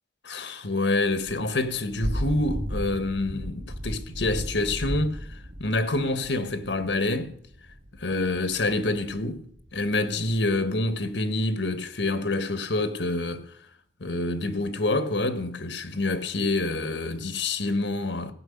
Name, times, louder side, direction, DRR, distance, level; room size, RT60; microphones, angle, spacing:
voice 1, 0.2-7.3 8.0-13.4 14.0-18.3, left 2 dB, 85° left, 1.4 m, -27 dB
Thunder / Rain, 1.1-10.6, equal, 75° right, 2.8 m, -36 dB
15.5 x 6.1 x 10.0 m
head